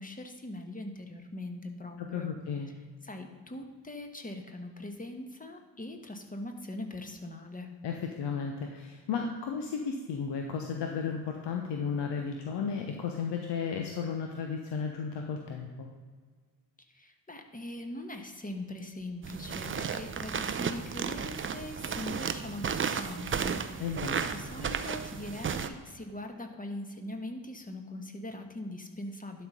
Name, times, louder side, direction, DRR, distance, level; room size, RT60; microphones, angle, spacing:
voice 1, 0.0-2.3 3.0-7.7 16.9-29.5, left 1 dB, 15° left, 4 dB, 1.4 m, -41 dB
voice 2, 2.0-2.7 7.8-15.9 23.8-24.2, left 6 dB, 55° left, 3 dB, 1.0 m, -34 dB
sound 1, 19.2-25.7, right 6 dB, 25° right, 0.6 m, -34 dB
11.0 x 4.2 x 5.4 m, 1.5 s
hypercardioid pair, 40°, 50 cm